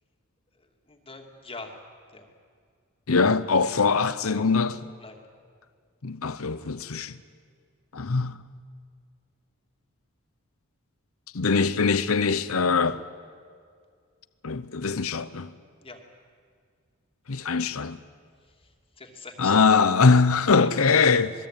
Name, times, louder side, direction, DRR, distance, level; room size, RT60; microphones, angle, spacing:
voice 1, 0.9-1.8 2.1-2.3 5.0-5.2 15.8-16.0 18.5-18.7 19.0-19.6 20.6-20.7, left 3 dB, 25° left, 2.6 m, -43 dB
voice 2, 3.1-4.9 6.0-7.2 7.9-8.4 11.3-13.0 14.4-15.5 17.3-18.0 19.4-21.3, left 4 dB, 70° left, 0.8 m, -22 dB
27.0 x 20.5 x 9.1 m
head